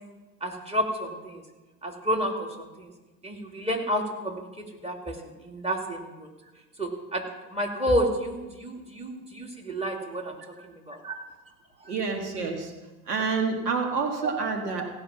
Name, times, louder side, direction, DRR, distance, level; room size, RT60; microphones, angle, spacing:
voice 1, 0.4-1.4 1.8-2.9 3.2-6.3 6.8-7.3 7.5-10.4 10.6-11.2 14.2-14.3, equal, 15° right, 1 dB, 2.7 m, -30 dB
voice 2, 11.8-12.7 13.1-14.9, right 4 dB, 85° right, 4 dB, 1.7 m, -28 dB
16.5 x 5.8 x 7.5 m, 1.2 s
hypercardioid pair, 75°, 46 cm